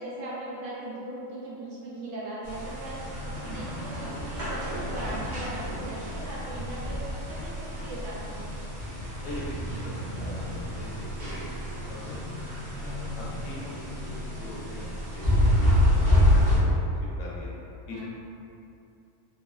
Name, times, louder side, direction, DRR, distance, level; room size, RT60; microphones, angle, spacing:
voice 1, 0.0-7.0 7.3-8.7 17.9-18.0, right 1 dB, 70° right, -7 dB, 0.9 m, -39 dB
sound 1, 2.4-16.6, left 1 dB, 45° right, 0.7 m, -28 dB
voice 2, 9.2-11.5 11.9-12.4 12.8-16.8 17.2-17.5 17.9-18.0, left 1 dB, 80° left, -5 dB, 1.0 m, -42 dB
2.9 x 2.1 x 2.2 m, 2.7 s
omnidirectional pair, 1.4 m